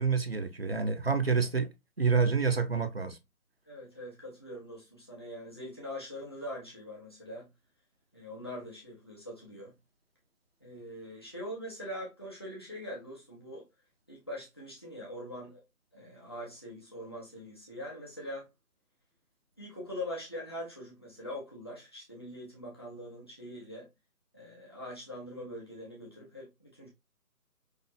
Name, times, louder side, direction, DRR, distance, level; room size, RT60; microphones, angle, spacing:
voice 1, 0.0-1.7 2.0-3.2, right 5 dB, 40° right, 0.6 m, -28 dB
voice 2, 3.7-7.5 8.1-9.7 10.6-13.7 14.1-15.6 15.9-18.5 19.6-23.9 24.3-26.9, left 1 dB, 15° left, 1.1 m, -43 dB
5.9 x 3.2 x 2.6 m
hypercardioid pair, 180°, 46 cm